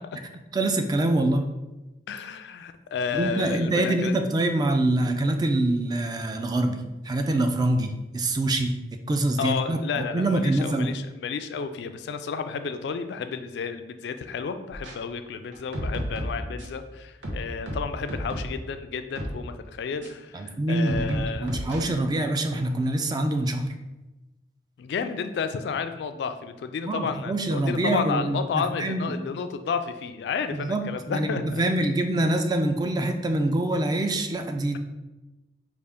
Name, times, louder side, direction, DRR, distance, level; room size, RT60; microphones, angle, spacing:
voice 1, 0.5-1.4 3.1-8.7 9.1-10.9 20.3-23.7 26.9-29.1 30.5-34.8, right 1 dB, 20° right, 6 dB, 0.3 m, -25 dB
voice 2, 2.1-4.2 9.4-21.5 24.8-31.6, left 5 dB, 65° left, 9 dB, 0.3 m, -31 dB
sound 1, 14.7-14.9 15.5-16.8 17.2-18.6 19.1-19.4 20.0-20.1 20.9-21.8, equal, 90° right, 0.9 m, -33 dB
5.0 x 2.4 x 3.5 m, 1.1 s
head